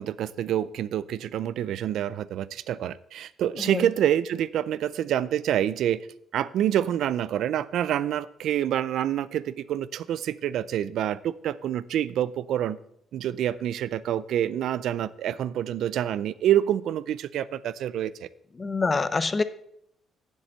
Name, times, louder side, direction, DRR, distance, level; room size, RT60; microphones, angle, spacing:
voice 1, 0.0-6.1 6.3-12.8 13.1-18.3, right 11 dB, 80° right, 17 dB, 0.4 m, -27 dB
voice 2, 3.6-3.9 18.6-19.4, left 4 dB, 30° left, 13 dB, 0.7 m, -26 dB
7.7 x 7.4 x 6.6 m, 0.75 s
cardioid pair, 85°, 0 cm